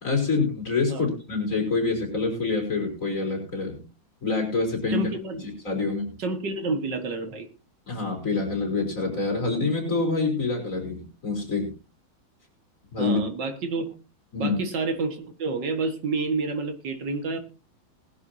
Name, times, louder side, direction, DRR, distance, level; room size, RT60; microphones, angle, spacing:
voice 1, 0.0-3.8 4.2-5.1 5.6-6.1 7.9-11.7 12.9-13.2 14.3-14.6, left 3 dB, 40° left, 1 dB, 4.4 m, -26 dB
voice 2, 4.9-5.5 6.2-7.5 13.0-13.9 14.4-17.4, right 3 dB, 65° right, 7 dB, 2.3 m, -29 dB
20.0 x 11.0 x 2.8 m, 0.31 s
omnidirectional pair, 2.1 m